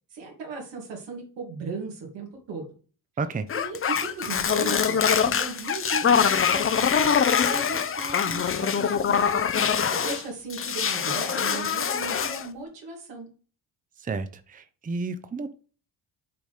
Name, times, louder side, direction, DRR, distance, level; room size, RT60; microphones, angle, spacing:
voice 1, 0.1-2.7 3.5-7.2 7.4-9.3 9.8-13.3, right 4 dB, 85° right, 0 dB, 2.6 m, -37 dB
sound 1, 3.5-10.2 10.5-12.5, left 7 dB, 30° left, 0.6 m, -24 dB
voice 2, 14.0-15.6, right 4 dB, 20° right, 11 dB, 0.6 m, -31 dB
6.8 x 4.0 x 5.0 m, 0.40 s
cardioid pair, 75°, 42 cm